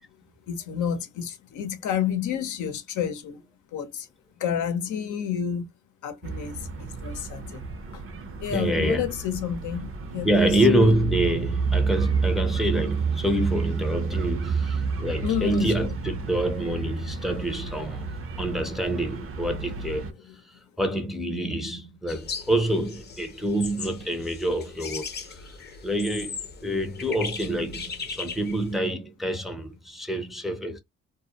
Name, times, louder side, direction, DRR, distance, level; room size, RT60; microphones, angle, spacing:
voice 1, 0.5-3.4 3.7-4.1 4.4-5.7 6.0-7.6 7.9-8.0 8.4-10.6 15.2-16.0 20.3-20.4, left 9 dB, 75° left, 0.7 m, -30 dB
sound 1, 6.2-20.1, right 5 dB, 45° right, 0.6 m, -30 dB
voice 2, 8.5-9.1 10.2-18.1 18.4-20.1 20.8-25.6 25.8-30.8, right 1 dB, ahead, 0.5 m, -26 dB
sound 2, 22.1-28.8, left 5 dB, 35° left, 0.7 m, -38 dB
2.3 x 2.0 x 2.7 m
cardioid pair, 90°, 30 cm